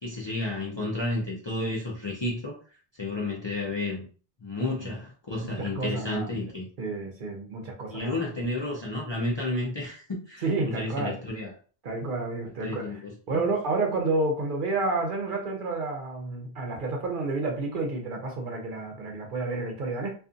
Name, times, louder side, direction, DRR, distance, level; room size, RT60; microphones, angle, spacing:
voice 1, 0.0-2.6 2.9-4.1 4.4-6.7 7.9-11.5 12.4-13.4, left 2 dB, 35° left, -4 dB, 0.5 m, -32 dB
voice 2, 5.6-6.3 6.8-8.2 10.4-11.2 11.8-13.0 13.3-20.1, right 3 dB, 60° right, 2 dB, 0.8 m, -30 dB
2.5 x 2.4 x 2.4 m, 0.39 s
omnidirectional pair, 1.0 m